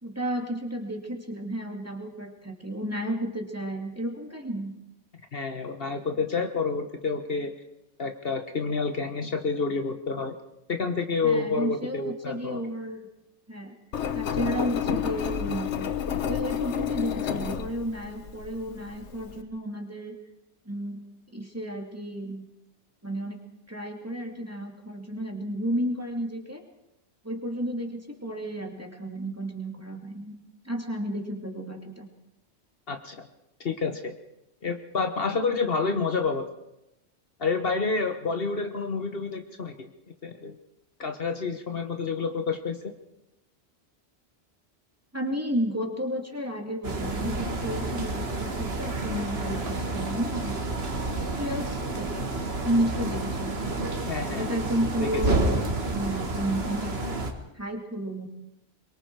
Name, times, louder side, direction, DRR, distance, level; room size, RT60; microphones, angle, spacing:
voice 1, 0.0-4.7 11.2-13.0 13.5-13.8 14.1-15.9 16.2-20.2 20.7-21.0 21.3-22.4 23.0-23.4 23.7-26.6 27.2-30.4 30.6-32.1 45.1-50.7 51.4-51.7 51.9-52.3 52.6-53.7 54.3-57.0 57.5-58.3, equal, 15° right, 2 dB, 2.6 m, -32 dB
voice 2, 5.3-7.5 8.0-10.3 10.7-12.6 32.9-33.3 33.6-34.1 34.6-36.5 37.4-39.9 40.2-40.6 41.0-42.9 54.0-54.5, left 4 dB, 55° left, 6 dB, 1.3 m, -29 dB
Engine, 13.9-19.4, left 9 dB, 90° left, 1.2 m, -30 dB
sound 1, 46.8-57.3, right 2 dB, 65° right, 2.1 m, -30 dB
24.0 x 22.5 x 4.7 m, 0.90 s
omnidirectional pair, 1.2 m